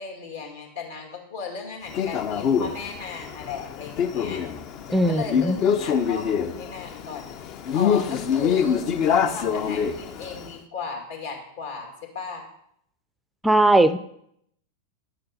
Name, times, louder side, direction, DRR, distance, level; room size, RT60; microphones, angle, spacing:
voice 1, 0.0-4.4 4.9-5.6 5.8-7.3 7.7-8.8 9.3-12.4, left 5 dB, 60° left, 1 dB, 2.3 m, -36 dB
Male speech man speaking, 1.9-10.5, left 7 dB, 40° left, 0.6 m, -25 dB
voice 2, 4.9-5.6 13.4-14.0, right 1 dB, 5° right, 13 dB, 0.4 m, -19 dB
10.5 x 7.7 x 4.1 m, 0.71 s
figure-of-eight pair, 90°, 0 cm